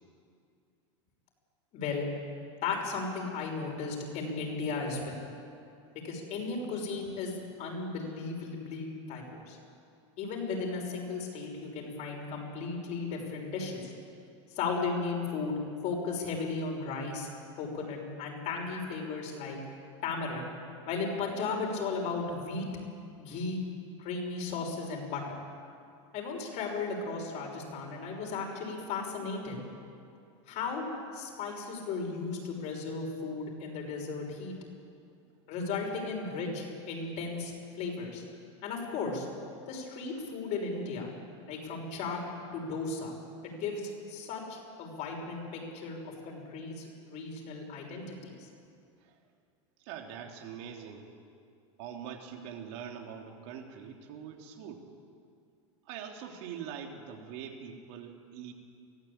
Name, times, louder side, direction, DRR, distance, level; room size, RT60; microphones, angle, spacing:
voice 1, 1.7-2.1 2.6-5.2 5.9-9.6 10.2-13.9 14.5-17.3 17.5-19.6 20.0-20.4 20.9-22.7 23.2-23.6 24.0-25.4 26.1-29.6 30.5-30.9 31.1-34.5 35.5-38.2 38.6-39.3 39.7-41.1 41.5-42.2 42.5-43.1 43.4-48.5, left 4 dB, 50° left, 1 dB, 6.2 m, -35 dB
voice 2, 49.8-51.1 51.8-54.8 55.8-58.5, right 8 dB, 60° right, 2 dB, 3.2 m, -43 dB
23.5 x 15.5 x 8.9 m, 2.5 s
supercardioid pair, 120°, 15 cm